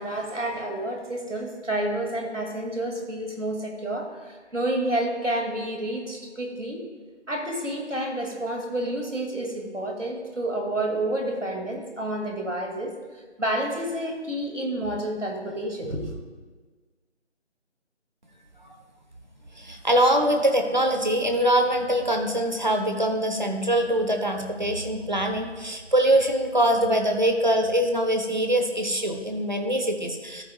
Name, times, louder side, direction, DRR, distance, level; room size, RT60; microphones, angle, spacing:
voice 1, 0.0-6.8 7.3-12.9 13.4-16.1, right 1 dB, 90° right, 1 dB, 2.3 m, -29 dB
voice 2, 19.6-30.4, right 1 dB, 40° right, 4 dB, 0.9 m, -23 dB
13.0 x 8.5 x 2.3 m, 1.4 s
figure-of-eight pair, 165°, 36 cm